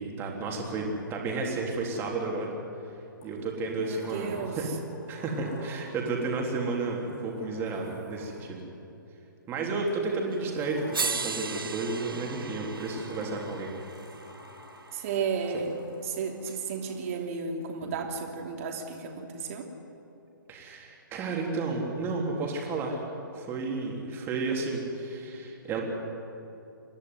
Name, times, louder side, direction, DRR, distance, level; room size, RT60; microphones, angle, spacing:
voice 1, 0.0-2.5 3.2-4.7 5.1-8.6 9.5-13.7 20.5-23.0 23.3-25.8, right 3 dB, 20° right, 0 dB, 3.6 m, -32 dB
Sliding door, 0.9-2.2 3.2-8.8 9.9-17.0, left 2 dB, 40° left, 4.8 m, -50 dB
voice 2, 3.8-4.7 14.9-15.7 16.0-19.7, right 5 dB, 40° right, 2 dB, 2.9 m, -33 dB
sound 1, 10.3-10.4 10.9-15.1 16.5-16.6, right 5 dB, 85° right, 0.7 m, -36 dB
27.5 x 11.0 x 9.7 m, 2.9 s
hypercardioid pair, 135°, 11 cm